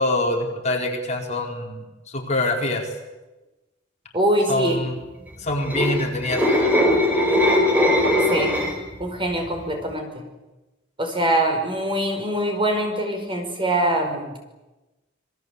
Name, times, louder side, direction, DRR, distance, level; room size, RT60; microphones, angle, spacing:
voice 1, 0.0-2.9 4.5-5.0 5.4-6.7, left 2 dB, 35° left, 1 dB, 4.6 m, -25 dB
voice 2, 4.1-4.8 8.3-8.6 9.0-10.2 11.0-14.5, right 1 dB, 25° right, 4 dB, 5.2 m, -23 dB
sound 1, 5.5-9.0 9.3-9.6, left 1 dB, 10° right, 4.8 m, -20 dB
28.0 x 22.0 x 8.4 m, 1.1 s
head